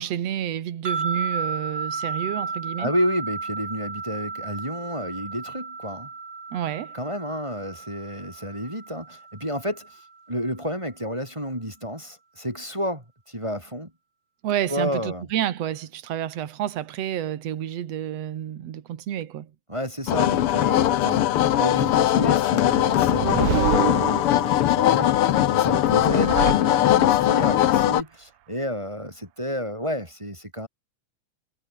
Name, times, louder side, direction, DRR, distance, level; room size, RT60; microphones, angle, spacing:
voice 1, 0.0-2.9 6.5-7.0 14.4-19.5, right 11 dB, 60° right, 2.5 m, -29 dB
sound 1, 0.8-10.1, right 4 dB, 25° right, 1.8 m, -34 dB
voice 2, 2.8-6.1 6.9-13.9 14.7-15.3 19.7-30.7, equal, 10° right, 4.0 m, -31 dB
sound 2, 20.1-28.0, left 12 dB, 70° left, 1.3 m, -20 dB
sound 3, 22.7-24.7 25.8-27.3, right 15 dB, 80° right, 2.5 m, -28 dB
omnidirectional pair, 3.7 m